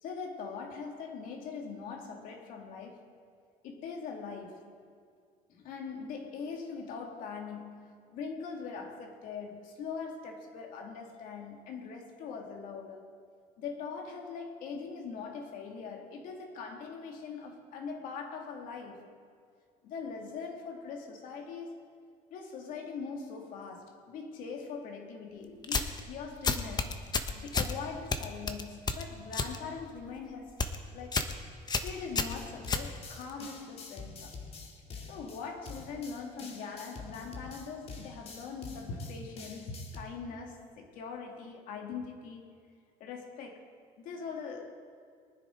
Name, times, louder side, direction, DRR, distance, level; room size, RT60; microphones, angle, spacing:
voice 1, 0.0-3.0 3.6-4.7 5.5-13.1 13.6-19.1 19.8-21.8 22.3-27.0 27.4-30.6 30.9-31.3 31.8-34.3 35.1-42.5 43.0-43.6 44.0-44.8, left 5 dB, 70° left, 2.4 m, -42 dB
sound 1, 25.6-26.0 26.4-27.7 28.1-29.6 29.9-30.2 30.5-30.8 31.1-31.4 31.7-33.3, left 4 dB, 30° left, 1.1 m, -31 dB
sound 2, 32.3-40.0, left 4 dB, 45° left, 2.0 m, -47 dB
23.0 x 10.0 x 3.9 m
cardioid pair, 105°, 14 cm